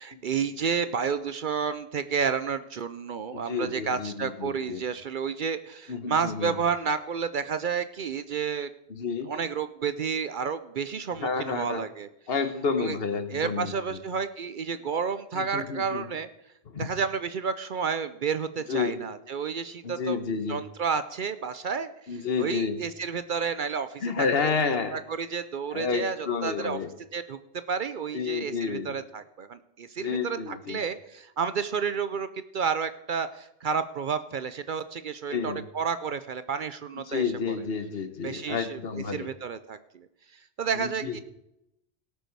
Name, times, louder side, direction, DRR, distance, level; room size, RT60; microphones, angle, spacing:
voice 1, 0.0-8.7 9.3-12.1 12.8-13.0 13.3-16.3 16.7-20.2 20.5-24.5 24.9-26.8 27.1-27.4 27.7-32.3 32.5-37.6 38.2-38.8 39.1-40.1 40.6-41.2, right 6 dB, 55° right, 12 dB, 0.7 m, -31 dB
voice 2, 3.3-4.8 5.9-6.6 8.9-9.3 11.2-11.8 12.3-14.0 15.3-16.1 16.7-16.9 18.7-19.1 19.8-20.6 22.1-22.8 24.0-25.0 25.7-26.9 28.1-29.0 30.0-30.8 35.3-35.6 37.1-39.3 40.8-41.2, left 5 dB, 65° left, 9 dB, 1.3 m, -30 dB
17.5 x 6.8 x 4.6 m, 0.84 s
omnidirectional pair, 1.1 m